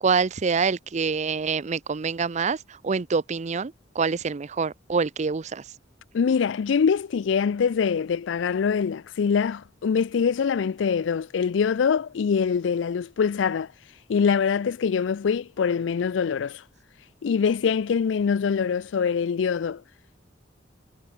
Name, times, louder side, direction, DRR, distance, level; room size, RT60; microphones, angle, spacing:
voice 1, 0.0-5.6, right 5 dB, 40° right, 0.5 m, -26 dB
voice 2, 6.1-13.7 14.1-16.6 17.2-19.8, left 6 dB, 75° left, 0.4 m, -24 dB
head